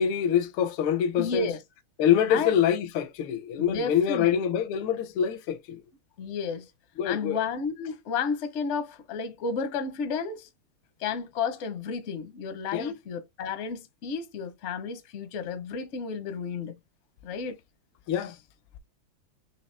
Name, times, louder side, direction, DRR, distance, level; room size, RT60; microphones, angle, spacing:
voice 1, 0.0-1.5 2.0-5.8 7.0-7.4 12.7-12.9 18.1-18.3, left 9 dB, 80° left, 1.4 m, -25 dB
voice 2, 1.2-1.6 2.3-2.5 3.6-4.3 6.2-6.7 7.0-10.5 11.0-16.7 17.2-17.6, left 5 dB, 60° left, 0.7 m, -32 dB
4.7 x 2.8 x 3.3 m
omnidirectional pair, 2.4 m